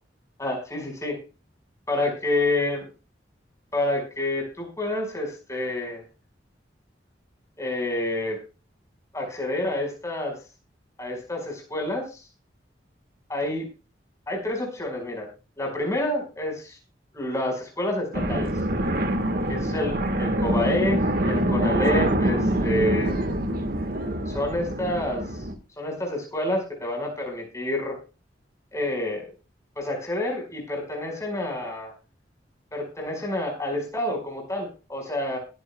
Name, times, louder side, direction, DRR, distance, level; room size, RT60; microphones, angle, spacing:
voice 1, 0.4-1.2 1.9-2.8 3.7-6.0 7.6-8.4 9.1-10.3 11.0-12.2 13.3-13.6 14.3-15.3 15.6-16.8 17.1-18.5 19.5-23.1 24.3-25.2 25.8-28.0 28.7-29.2 29.8-31.9 32.7-35.4, left 1 dB, 15° left, 1 dB, 5.1 m, -28 dB
sound 1, 18.1-25.6, right 1 dB, 55° right, 1.5 m, -25 dB
21.0 x 10.5 x 2.3 m, 0.32 s
head